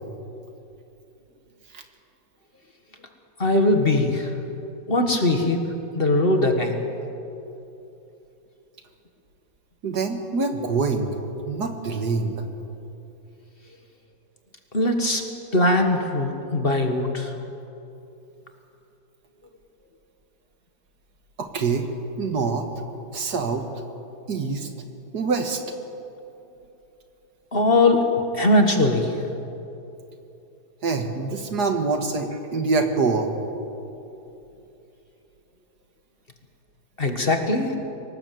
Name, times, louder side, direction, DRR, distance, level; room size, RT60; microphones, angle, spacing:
voice 1, 3.4-4.4 4.9-6.9 14.7-15.2 15.5-17.3 27.5-29.3 37.0-37.8, left 2 dB, 35° left, 4 dB, 1.8 m, -21 dB
voice 2, 9.8-11.2 11.5-12.4 21.4-21.9 22.2-22.7 23.1-23.7 24.3-24.7 25.1-25.6 30.8-33.3, right 4 dB, 70° right, 5 dB, 2.3 m, -25 dB
24.5 x 19.5 x 7.8 m, 2.8 s
omnidirectional pair, 1.8 m